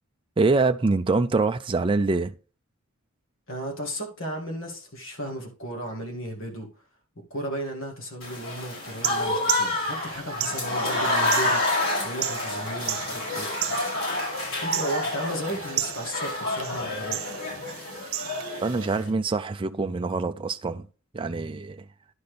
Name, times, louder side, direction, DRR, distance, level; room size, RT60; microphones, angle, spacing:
voice 1, 0.4-2.3 18.6-20.9 21.1-21.9, right 3 dB, 25° right, 0.4 m, -25 dB
voice 2, 3.5-6.7 7.3-13.8 14.6-17.2, right 1 dB, 65° left, 2.3 m, -35 dB
Applause / Crowd, 8.2-19.1, left 2 dB, 90° left, 5.1 m, -29 dB
sound 1, 8.8-18.9, right 13 dB, 80° right, 0.8 m, -35 dB
10.5 x 4.2 x 5.1 m
head